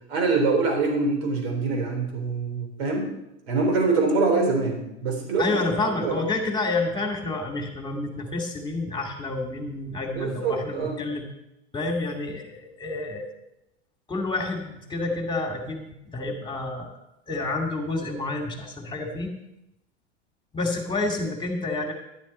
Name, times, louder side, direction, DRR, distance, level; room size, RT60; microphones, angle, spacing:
voice 1, 0.1-3.1 3.5-5.6 6.0-6.2 10.2-11.0, right 3 dB, 65° right, 2 dB, 3.6 m, -24 dB
voice 2, 5.4-11.2 11.7-13.3 14.1-17.0 17.3-19.3 20.5-21.9, left 2 dB, 15° left, 2 dB, 2.3 m, -29 dB
12.0 x 9.4 x 4.3 m, 0.90 s
hypercardioid pair, 95°, 34 cm